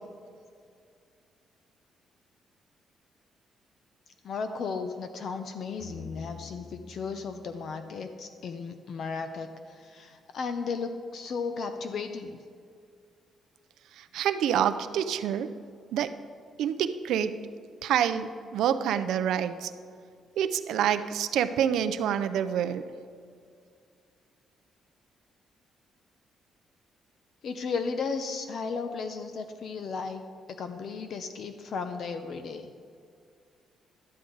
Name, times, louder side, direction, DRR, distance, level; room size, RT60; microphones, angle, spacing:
voice 1, 4.2-12.4 27.4-30.2 30.5-32.7, left 5 dB, 50° left, 8 dB, 0.5 m, -35 dB
sound 1, 5.8-9.0, left 4 dB, 75° left, 1.5 m, -47 dB
voice 2, 14.0-15.5 15.9-16.1 16.6-17.4 17.8-19.7 20.4-22.9, right 9 dB, 90° right, 11 dB, 0.4 m, -27 dB
12.0 x 9.7 x 3.9 m, 2.3 s
cardioid pair, 175°, 0 cm